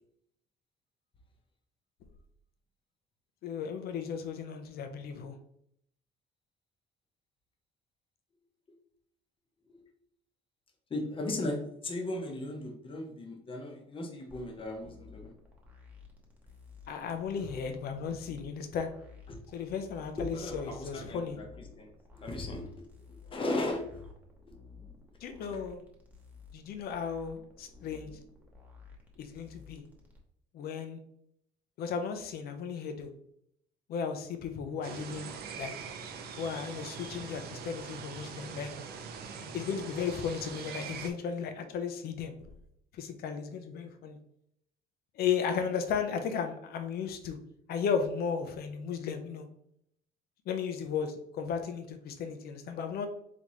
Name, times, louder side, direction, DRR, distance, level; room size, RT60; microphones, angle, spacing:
voice 1, 3.4-5.4 16.9-18.9 19.5-21.4 25.2-25.8 26.5-28.1 29.2-29.8 30.5-31.0 31.8-33.1 33.9-35.8 36.4-38.7 39.4-42.3 42.9-44.2 45.2-47.4 47.7-49.5 50.5-53.1, left 6 dB, 65° left, 7 dB, 0.7 m, -35 dB
voice 2, 10.9-15.3 19.3-19.4 20.2-22.8 23.3-24.1, left 2 dB, 30° left, 2 dB, 1.0 m, -37 dB
sound 1, 14.3-30.2, left 5 dB, 10° right, 1.1 m, -54 dB
sound 2, 34.8-41.1, right 6 dB, 70° right, 0.7 m, -42 dB
4.2 x 3.4 x 3.1 m, 0.72 s
cardioid pair, 110°, 17 cm